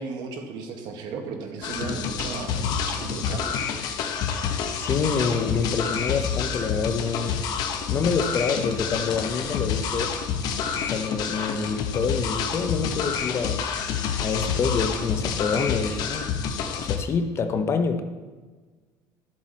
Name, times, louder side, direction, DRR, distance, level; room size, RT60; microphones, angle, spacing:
voice 1, 0.0-3.5, right 4 dB, 65° right, 3 dB, 1.6 m, -35 dB
sound 1, 1.6-17.0, left 7 dB, 55° left, 1.0 m, -28 dB
voice 2, 4.8-7.4 7.9-10.1 10.8-13.7 14.2-16.4 16.8-18.0, left 5 dB, 35° left, 8 dB, 0.8 m, -27 dB
12.5 x 7.6 x 4.1 m, 1.4 s
cardioid pair, 130°, 8 cm